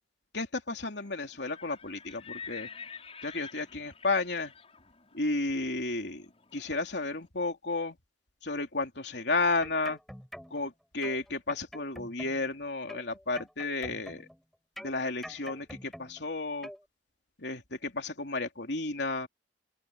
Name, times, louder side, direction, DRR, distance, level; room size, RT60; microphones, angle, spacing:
voice 1, 0.3-2.7 3.2-4.5 5.1-6.2 6.5-8.0 8.4-10.0 10.5-14.3 14.8-16.7 17.4-19.3, left 3 dB, 80° left, 3.2 m, -32 dB
Livestock farm animals working animals, 1.3-7.1, left 6 dB, 35° left, 6.4 m, -48 dB
sound 1, 9.6-10.7 11.0-12.5 12.9-14.4 14.8-16.3 16.6-16.8, equal, ahead, 8.0 m, -46 dB
open air
head